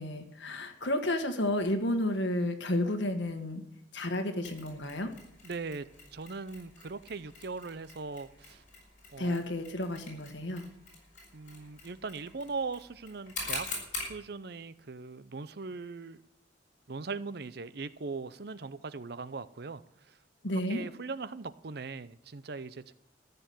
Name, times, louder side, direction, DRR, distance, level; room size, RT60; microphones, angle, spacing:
voice 1, 0.0-3.6 3.9-5.1 9.2-10.6 20.4-20.8, left 1 dB, 70° left, 6 dB, 1.7 m, -31 dB
Mechanisms, 4.4-14.2, left 3 dB, 40° left, 5.9 m, -44 dB
voice 2, 5.4-8.6 9.1-9.4 11.3-16.2 16.9-19.8 20.1-20.2 20.7-22.9, right 4 dB, 55° right, 15 dB, 0.6 m, -40 dB
14.0 x 6.9 x 9.4 m, 0.78 s
head